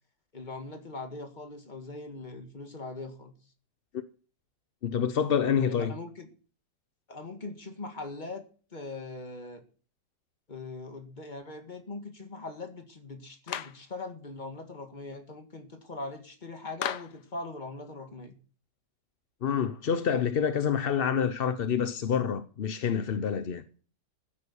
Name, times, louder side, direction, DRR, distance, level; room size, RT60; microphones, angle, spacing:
voice 1, 0.3-3.3 5.6-6.3 7.1-8.4 8.7-9.6 10.5-18.4, left 3 dB, 25° left, 1.8 m, -41 dB
voice 2, 4.8-5.9 19.4-23.6, left 7 dB, 50° left, 0.7 m, -27 dB
Clapping, 13.5-13.8 16.8-17.2, left 10 dB, 70° left, 1.3 m, -34 dB
14.5 x 8.3 x 7.1 m
omnidirectional pair, 1.9 m